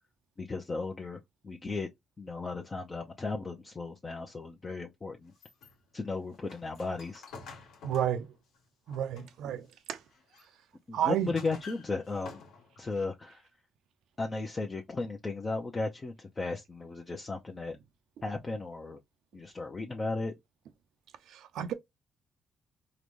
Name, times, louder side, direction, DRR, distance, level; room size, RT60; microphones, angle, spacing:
voice 1, 0.4-1.9 2.2-5.3 5.9-7.2 10.9-12.4 12.8-13.5 14.2-17.8 18.2-19.0 19.3-20.3, left 3 dB, 30° left, 0.7 m, -35 dB
sound 1, 5.3-9.5 10.0-10.5 11.0-13.0, left 4 dB, 80° left, 1.2 m, -50 dB
voice 2, 7.8-8.3 8.9-10.0 10.9-11.3 21.3-21.7, right 10 dB, 80° right, 0.5 m, -31 dB
3.8 x 2.2 x 3.2 m
cardioid pair, 90°, 0 cm